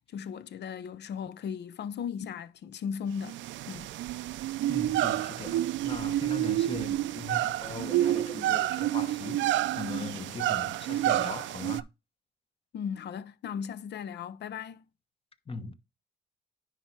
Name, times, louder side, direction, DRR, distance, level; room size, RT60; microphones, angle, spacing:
voice 1, 0.1-3.4 3.7-3.9 12.7-14.8, left 7 dB, 65° left, 0.6 m, -37 dB
sound 1, 3.2-11.8, right 14 dB, 80° right, 0.4 m, -29 dB
voice 2, 4.7-11.9 15.5-15.7, left 3 dB, 30° left, 1.0 m, -40 dB
10.0 x 3.4 x 4.4 m
cardioid pair, 95°, 19 cm